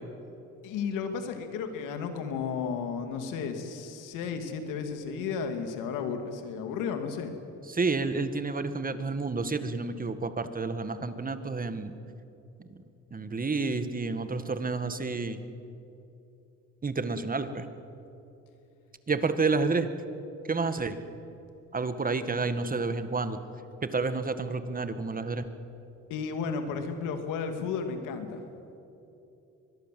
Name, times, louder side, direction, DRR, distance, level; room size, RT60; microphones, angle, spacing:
voice 1, 0.6-7.3 26.1-28.4, left 6 dB, 90° left, 7 dB, 2.5 m, -33 dB
voice 2, 7.7-11.9 13.1-15.4 16.8-17.7 19.1-19.9 20.5-21.0 21.7-23.4 23.8-25.5, right 4 dB, 30° right, 10 dB, 1.7 m, -30 dB
24.0 x 21.0 x 7.7 m, 2.9 s
cardioid pair, 85°, 31 cm